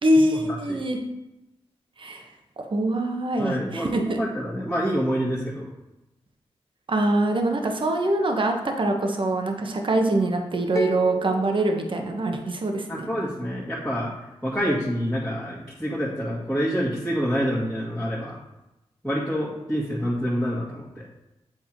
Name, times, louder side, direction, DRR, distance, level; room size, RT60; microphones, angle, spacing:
voice 1, 0.0-1.0 2.0-2.2 2.6-4.2 6.9-13.1, right 1 dB, 45° right, 3 dB, 1.1 m, -24 dB
voice 2, 3.4-5.7 12.9-14.1 14.4-18.3 19.0-21.1, equal, 5° left, -9 dB, 2.0 m, -27 dB
sound 1, 10.8-12.8, left 5 dB, 25° left, 0.8 m, -34 dB
8.1 x 3.5 x 4.6 m, 0.95 s
cardioid pair, 50°, 11 cm